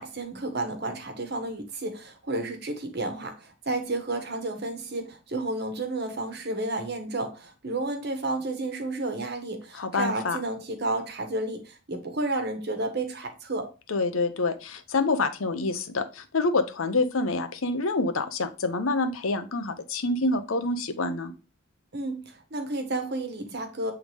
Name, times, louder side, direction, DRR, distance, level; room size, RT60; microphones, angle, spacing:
voice 1, 0.0-13.7 21.9-23.9, right 2 dB, 50° right, 1.2 m, -31 dB
voice 2, 9.7-10.4 13.9-21.3, left 3 dB, 80° left, 0.8 m, -27 dB
7.7 x 3.5 x 3.4 m
head